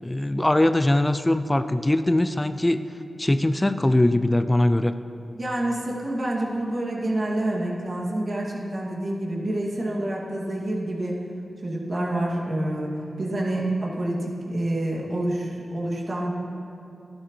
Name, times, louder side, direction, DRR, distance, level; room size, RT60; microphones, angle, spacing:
voice 1, 0.0-2.8 3.2-4.9, left 1 dB, 20° left, 11 dB, 0.4 m, -21 dB
voice 2, 5.3-11.2 11.6-12.9 13.2-16.3, right 1 dB, 55° right, -4 dB, 2.5 m, -27 dB
13.0 x 11.5 x 3.3 m, 2.8 s
cardioid pair, 45°, 0 cm